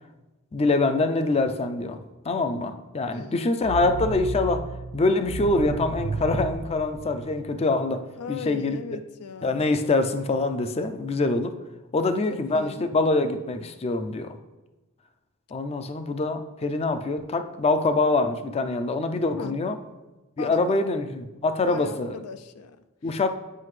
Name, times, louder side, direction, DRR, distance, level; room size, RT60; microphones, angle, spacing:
voice 1, 0.5-2.0 2.2-4.6 4.9-8.8 9.4-11.5 11.9-14.4 15.5-19.8 20.4-22.2 23.0-23.3, left 2 dB, 30° left, 9 dB, 0.4 m, -25 dB
sound 1, 3.6-7.6, right 4 dB, 50° right, 0.3 m, -33 dB
voice 2, 8.2-9.6 12.3-12.9 19.3-19.6 20.4-20.8 21.6-23.3, left 6 dB, 85° left, 11 dB, 0.4 m, -38 dB
7.6 x 5.0 x 3.2 m, 1.1 s
head